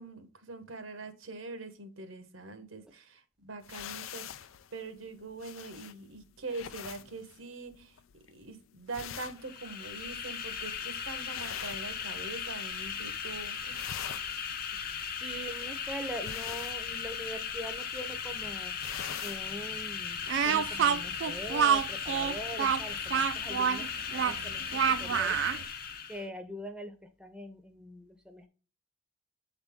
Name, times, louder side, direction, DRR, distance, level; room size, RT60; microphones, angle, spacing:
voice 1, 0.0-8.0 8.3-13.9, right 3 dB, 90° right, 1.1 m, -43 dB
sound 1, 3.6-12.6 12.9-13.3 13.6-19.5, left 10 dB, 90° left, 0.4 m, -46 dB
sound 2, 9.4-26.3, left 7 dB, 50° left, 0.8 m, -37 dB
voice 2, 15.2-18.7 19.2-25.4 26.1-28.5, right 1 dB, 5° right, 0.6 m, -43 dB
Speech, 20.3-25.6, right 7 dB, 65° right, 0.3 m, -27 dB
7.7 x 4.1 x 3.5 m
head